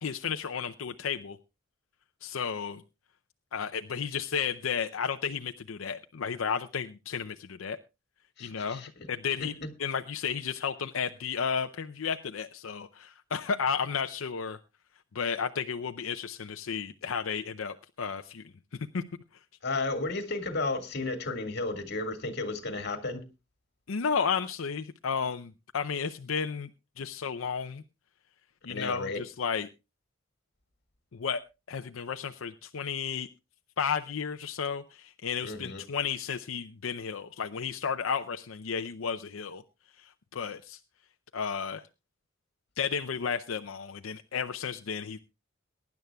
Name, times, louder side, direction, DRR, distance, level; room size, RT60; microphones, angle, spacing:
voice 1, 0.0-1.4 2.2-2.8 3.5-7.8 8.4-8.8 9.1-9.5 9.8-14.6 15.1-18.4 18.9-19.0 23.9-26.7 27.0-27.8 28.6-29.7 31.1-31.4 31.7-33.3 33.8-39.6 40.3-40.8 41.3-41.8 42.8-45.2, left 6 dB, 85° left, 0.6 m, -33 dB
voice 2, 8.4-8.9 9.4-9.7 19.6-23.2 28.7-29.2 35.4-35.8, left 3 dB, 55° left, 2.0 m, -33 dB
22.5 x 10.5 x 2.3 m
head